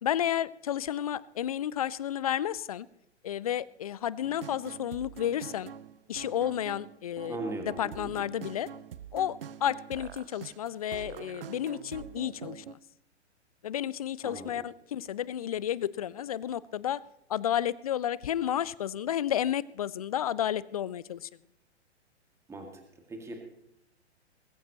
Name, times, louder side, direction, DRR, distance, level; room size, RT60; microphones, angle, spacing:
voice 1, 0.0-2.9 3.2-5.7 6.1-7.4 7.8-8.7 9.1-12.8 13.6-17.0 17.3-21.3, left 10 dB, 35° left, 21 dB, 0.4 m, -31 dB
sound 1, 4.2-12.7, right 8 dB, 55° right, 0.7 m, -45 dB
voice 2, 7.3-8.1 14.2-14.6 22.5-22.8 23.1-23.4, right 2 dB, 10° right, 3 dB, 2.0 m, -38 dB
20.0 x 16.0 x 2.9 m, 0.79 s
figure-of-eight pair, 115°, 35 cm